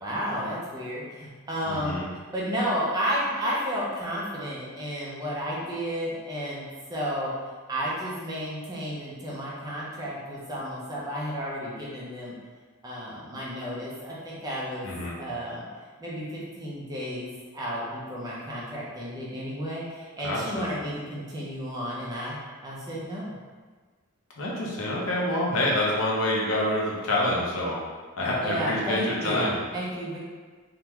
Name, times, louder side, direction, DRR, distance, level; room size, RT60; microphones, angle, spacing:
voice 1, 0.0-6.6 6.9-7.3 7.7-12.3 12.8-14.9 15.2-15.7 16.0-22.4 22.6-23.3 28.4-30.2, equal, 20° right, -6 dB, 0.6 m, -32 dB
voice 2, 1.6-2.1 14.8-15.2 20.2-20.7 24.4-27.8 28.2-29.6, left 1 dB, 75° left, -4 dB, 0.7 m, -27 dB
3.6 x 2.2 x 3.0 m, 1.4 s
head